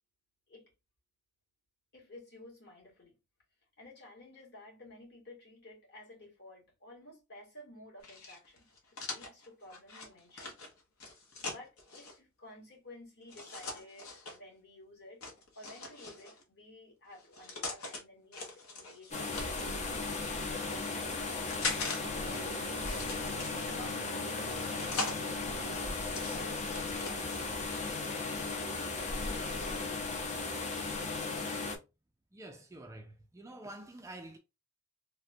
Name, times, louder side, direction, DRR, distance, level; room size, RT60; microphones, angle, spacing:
voice 1, 1.9-3.2 3.8-8.6 8.9-10.6 11.4-15.2 15.5-23.0 23.6-27.0 27.3-27.6, left 1 dB, 50° left, 1.4 m, -53 dB
sound 1, 8.0-12.1 13.3-14.4 15.2-16.4 17.1-18.0 18.3-19.8 20.5-22.0 22.3-23.8 24.4-25.2 25.7-27.4, left 3 dB, 80° left, 0.9 m, -41 dB
sound 2, 19.1-31.8, left 3 dB, 35° left, 0.6 m, -36 dB
Bowed string instrument, 21.8-26.8, right 4 dB, 90° right, 0.4 m, -50 dB
voice 2, 32.3-34.4, right 1 dB, 15° right, 0.3 m, -48 dB
3.4 x 2.2 x 2.6 m
head